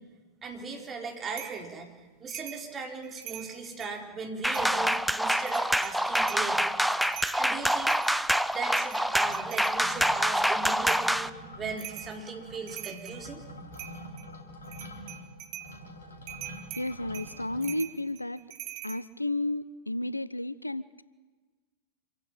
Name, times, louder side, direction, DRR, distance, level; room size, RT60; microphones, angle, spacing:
voice 1, 0.4-1.9 2.2-6.7 7.4-8.0 8.5-13.4, right 4 dB, 20° right, 2 dB, 4.3 m, -38 dB
sound 1, 1.4-1.6 2.3-2.6 3.0-4.0 4.5-5.0 5.4-6.5 6.8-9.8 10.9-11.1 11.8-12.1 12.5-13.2 13.7-14.3 14.6-15.7 16.3-19.0, right 12 dB, 45° right, 1.6 m, -43 dB
sound 2, 4.4-11.3, equal, ahead, 0.6 m, -26 dB
sound 3, 4.5-5.4 5.8-5.9 6.1-6.8 7.0-17.6, equal, 70° left, 3.3 m, -47 dB
voice 2, 16.8-18.4 18.8-21.0, left 1 dB, 85° left, 18 dB, 0.6 m, -32 dB
27.0 x 15.5 x 9.0 m, 1.3 s
figure-of-eight pair, 90°, 0 cm